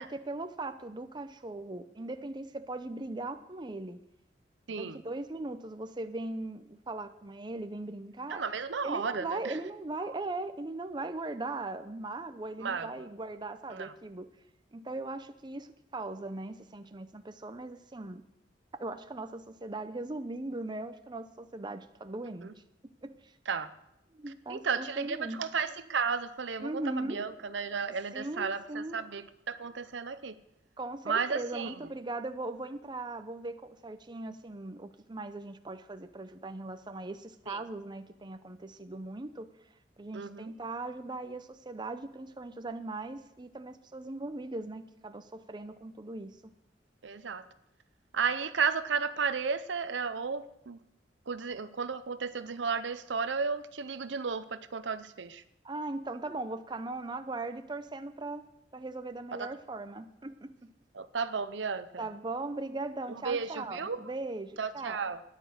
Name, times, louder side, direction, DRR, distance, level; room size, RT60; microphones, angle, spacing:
voice 1, 0.0-4.0 4.7-8.4 8.8-14.3 14.7-18.3 18.8-22.5 23.0-23.3 24.1-25.4 26.6-27.2 28.1-29.0 30.8-39.5 40.0-46.5 55.6-60.7 62.0-65.0, right 2 dB, 25° right, 8 dB, 0.7 m, -39 dB
voice 2, 4.7-5.0 8.3-9.6 10.0-10.1 12.6-12.9 13.7-13.9 22.4-22.5 23.5-23.7 24.5-30.4 31.0-31.9 37.5-37.6 40.1-40.5 47.0-47.5 48.1-50.8 51.3-55.4 59.4-59.5 60.9-62.1 63.1-64.1 64.6-65.2, right 5 dB, 75° right, 12 dB, 0.7 m, -33 dB
13.5 x 10.0 x 6.5 m, 0.84 s
head